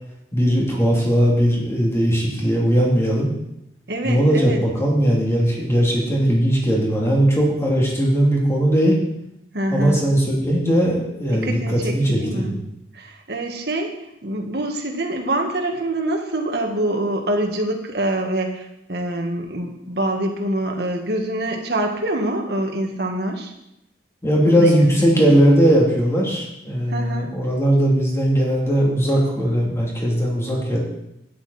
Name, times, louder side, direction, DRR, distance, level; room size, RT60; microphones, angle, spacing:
voice 1, 0.3-3.3 4.0-9.0 9.7-12.6 24.2-30.8, equal, 15° left, -3 dB, 3.0 m, -19 dB
voice 2, 3.9-4.6 9.5-10.0 11.3-12.6 12.9-14.0 14.2-23.5 24.4-25.2 26.9-27.3, right 1 dB, 65° right, 3 dB, 1.7 m, -25 dB
12.0 x 10.0 x 4.3 m, 0.85 s
head